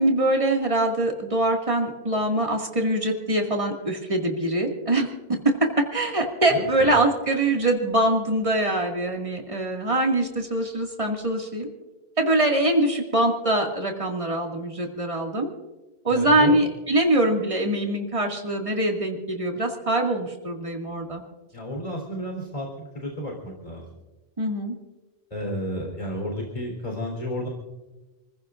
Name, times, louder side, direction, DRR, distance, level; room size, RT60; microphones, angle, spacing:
voice 1, 0.0-11.7 12.2-15.5 16.0-21.2 24.4-24.7, right 1 dB, 30° right, 1 dB, 2.2 m, -23 dB
voice 2, 6.5-6.9 16.1-16.6 21.5-23.9 25.3-27.5, equal, 35° left, 0 dB, 3.9 m, -32 dB
29.0 x 15.5 x 2.5 m, 1.1 s
omnidirectional pair, 1.1 m